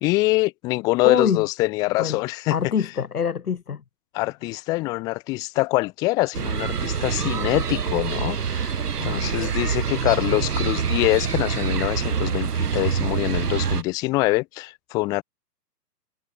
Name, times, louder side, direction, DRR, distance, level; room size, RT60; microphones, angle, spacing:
voice 1, 0.0-2.5 4.1-15.2, left 22 dB, 10° left, 0.5 m, -24 dB
voice 2, 1.0-1.4 2.0-2.2 2.5-3.8 9.0-9.3, left 7 dB, 65° left, 2.1 m, -25 dB
sound 1, 6.3-13.8, right 7 dB, 70° right, 1.8 m, -25 dB
figure-of-eight pair, 120°, 48 cm